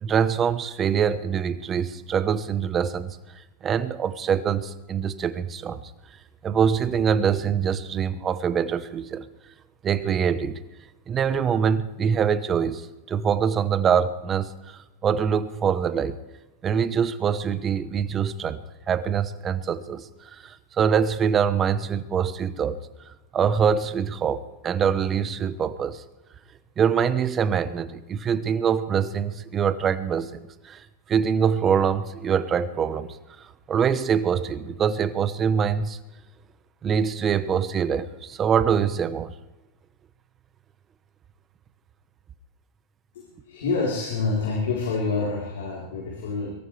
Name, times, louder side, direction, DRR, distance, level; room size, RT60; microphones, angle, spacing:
voice 1, 0.0-3.2 3.6-5.8 6.4-9.3 9.8-10.6 11.1-16.2 16.6-18.6 18.9-22.8 23.3-26.0 26.8-30.3 30.6-36.0 36.8-39.3, right 7 dB, 25° right, 13 dB, 1.0 m, -24 dB
voice 2, 43.1-46.5, left 4 dB, 85° left, -2 dB, 4.0 m, -27 dB
23.0 x 14.5 x 3.4 m, 1.1 s
supercardioid pair, 125°, 0 cm